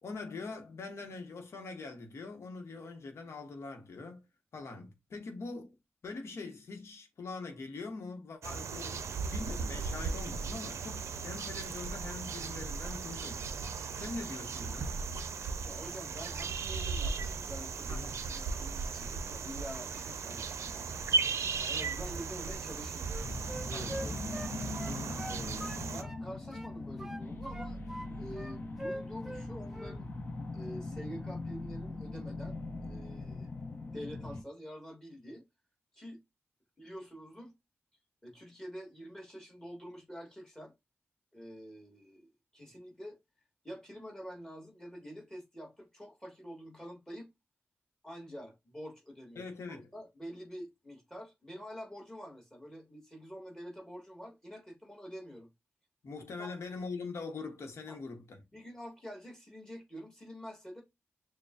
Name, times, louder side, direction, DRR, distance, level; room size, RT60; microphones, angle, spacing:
voice 1, 0.0-4.2 4.5-5.7 6.0-13.6 13.9-15.0 17.9-18.2 23.7-24.1 24.8-25.2 49.4-49.9 56.0-58.4, left 3 dB, 65° left, 1.0 m, -43 dB
sound 1, 8.4-26.0, right 4 dB, 80° right, 0.5 m, -37 dB
voice 2, 15.6-20.9 21.7-23.1 23.6-24.3 25.3-27.8 28.1-30.1 30.5-32.6 32.8-33.5 33.9-35.4 35.9-36.2 36.8-37.5 38.2-40.7 41.3-43.2 43.6-47.3 48.0-55.5 56.4-56.8 57.9-58.0 58.5-60.8, equal, 10° left, 1.6 m, -47 dB
Wind instrument woodwind instrument, 23.1-26.2 26.5-28.1 28.3-29.5 29.7-30.0, equal, 10° right, 0.3 m, -43 dB
sound 2, 23.2-34.4, left 2 dB, 45° left, 0.9 m, -41 dB
6.6 x 2.2 x 2.4 m
wide cardioid pair, 140°, 5 cm